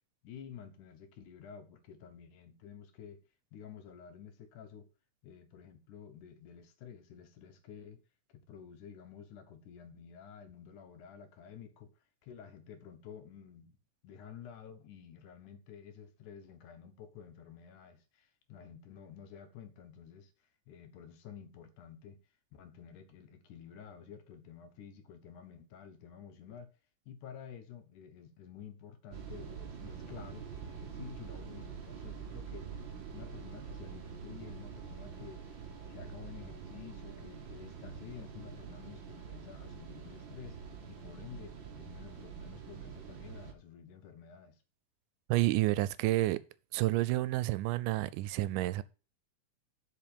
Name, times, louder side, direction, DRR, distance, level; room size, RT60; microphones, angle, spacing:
voice 1, 0.2-3.2 3.5-4.9 5.2-8.0 8.3-11.9 12.2-13.8 14.0-20.3 20.7-22.2 22.5-26.7 27.1-32.8 33.1-35.4 35.9-40.6 40.9-44.6, left 8 dB, 75° left, 2.4 m, -51 dB
sound 1, 29.1-43.5, right 7 dB, 55° right, 1.4 m, -46 dB
voice 2, 45.3-46.4 46.7-48.8, right 17 dB, 85° right, 2.1 m, -29 dB
7.4 x 5.4 x 6.8 m
omnidirectional pair, 3.7 m